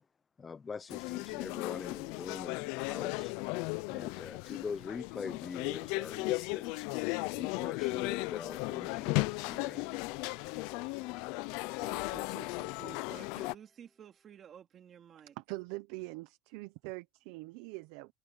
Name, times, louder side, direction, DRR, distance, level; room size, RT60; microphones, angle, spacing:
voice 1, 0.4-3.3 3.9-6.9 7.4-9.9, left 5 dB, 20° left, 0.7 m, -43 dB
sound 1, 0.9-13.5, left 25 dB, 70° left, 0.5 m, -36 dB
sound 2, 9.2-14.4, right 1 dB, 5° right, 2.4 m, -64 dB
voice 2, 11.8-15.3, right 9 dB, 35° right, 3.0 m, -52 dB
voice 3, 15.4-18.1, right 23 dB, 75° right, 0.8 m, -43 dB
cardioid pair, 140°, 0 cm